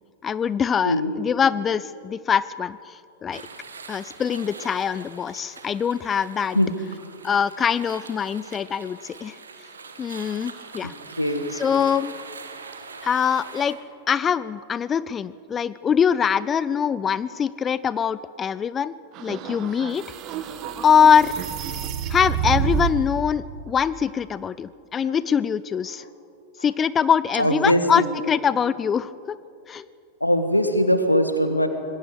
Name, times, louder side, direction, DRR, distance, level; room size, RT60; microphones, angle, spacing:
voice 1, 0.2-3.4 3.9-6.6 7.2-9.4 10.0-10.9 11.5-12.1 13.0-13.8 14.1-20.0 20.8-21.3 22.1-26.0 26.6-29.4 29.7-29.8, left 7 dB, 20° left, 17 dB, 0.4 m, -23 dB
sound 1, 3.3-13.8, right 4 dB, 70° right, 1.7 m, -42 dB
sound 2, 19.1-23.2, right 8 dB, 40° right, 1.5 m, -29 dB
voice 2, 27.4-28.0 30.2-31.7, equal, 85° left, 8 dB, 1.6 m, -21 dB
25.5 x 21.0 x 5.0 m, 2.5 s
figure-of-eight pair, 90°, 0 cm